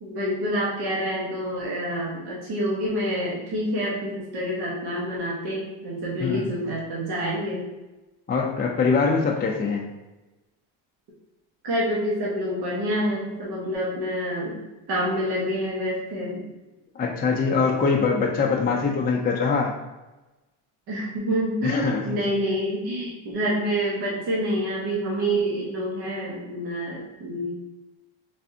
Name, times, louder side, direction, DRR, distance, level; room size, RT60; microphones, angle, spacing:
voice 1, 0.0-7.7 11.6-14.6 14.9-16.4 20.9-27.5, equal, 55° right, -5 dB, 1.2 m, -27 dB
voice 2, 8.3-9.8 17.0-19.7 21.6-22.2, left 5 dB, 20° left, -1 dB, 0.5 m, -23 dB
3.5 x 3.3 x 2.7 m, 1.1 s
supercardioid pair, 90°, 45 cm